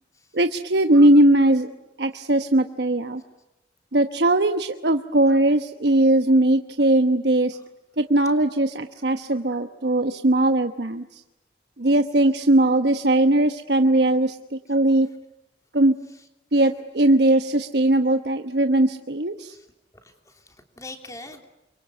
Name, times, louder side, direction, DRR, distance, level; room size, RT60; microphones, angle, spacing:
voice 1, 0.3-1.7 2.0-3.2 3.9-7.6 8.0-11.2 11.8-15.1 15.7-15.9 16.5-19.5, right 1 dB, 65° right, 7 dB, 1.1 m, -19 dB
voice 2, 19.9-21.5, left 2 dB, 20° left, 5 dB, 3.2 m, -44 dB
29.0 x 24.0 x 8.4 m, 0.94 s
head